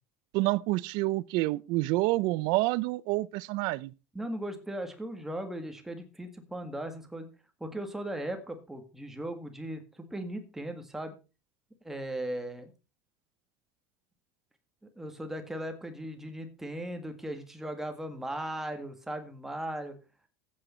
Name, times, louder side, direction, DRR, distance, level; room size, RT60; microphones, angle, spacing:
voice 1, 0.3-3.9, right 20 dB, 55° right, 0.6 m, -28 dB
voice 2, 4.1-7.3 7.6-11.1 11.8-12.7 15.0-20.0, right 1 dB, 5° right, 1.8 m, -37 dB
14.0 x 8.7 x 4.3 m
cardioid pair, 165°, 9 cm